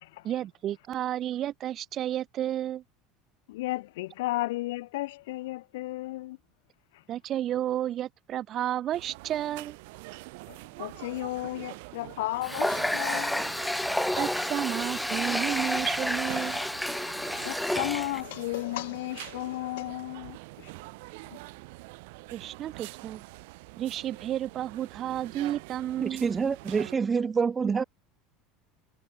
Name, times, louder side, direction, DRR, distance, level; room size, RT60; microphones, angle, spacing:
voice 1, 0.2-2.8 7.1-9.8 14.2-16.6 22.3-23.2 23.8-26.3, right 12 dB, 45° right, 1.4 m, -32 dB
voice 2, 3.5-6.4 10.5-13.4 17.4-20.7, left 18 dB, 75° left, 2.3 m, -34 dB
sound 1, 8.9-27.0, right 25 dB, 70° right, 6.3 m, -45 dB
Water tap faucet, 12.4-18.2, left 1 dB, 5° left, 2.5 m, -30 dB
voice 3, 26.0-27.8, right 5 dB, 25° right, 1.0 m, -27 dB
hypercardioid pair, 80°, 0 cm